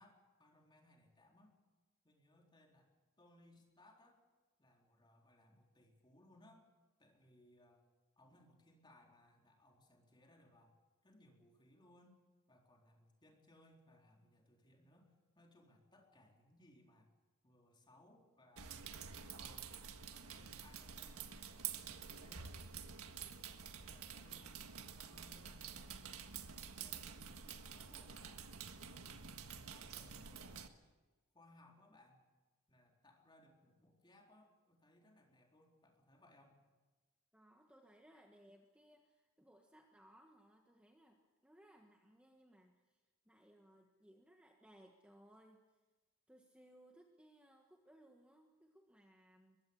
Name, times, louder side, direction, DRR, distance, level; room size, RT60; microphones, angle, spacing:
voice 1, 0.0-1.6 2.0-4.2 4.6-6.7 7.0-7.8 8.2-10.8 11.0-12.2 12.5-17.1 17.4-18.8 19.1-19.7 20.1-22.6 23.8-26.5 26.8-28.5 28.9-29.4 29.7-30.8 31.3-32.2 32.7-36.6, left 1 dB, 20° left, 0 dB, 4.0 m, -67 dB
sound 1, 18.6-30.7, right 7 dB, 90° right, 1.6 m, -49 dB
voice 2, 37.3-45.6 46.3-49.6, right 1 dB, 5° right, 1 dB, 1.4 m, -65 dB
22.5 x 22.0 x 7.2 m, 1.2 s
head